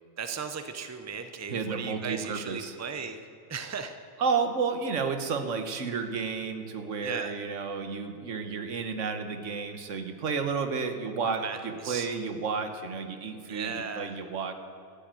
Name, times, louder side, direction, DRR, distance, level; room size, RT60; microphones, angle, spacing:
voice 1, 0.2-3.2 3.5-4.0 7.0-7.3 11.4-12.1 13.5-14.2, right 6 dB, 15° right, 8 dB, 0.6 m, -36 dB
voice 2, 1.5-2.7 4.2-14.5, right 5 dB, 85° right, 7 dB, 1.4 m, -31 dB
13.5 x 7.1 x 9.0 m, 2.4 s
omnidirectional pair, 1.3 m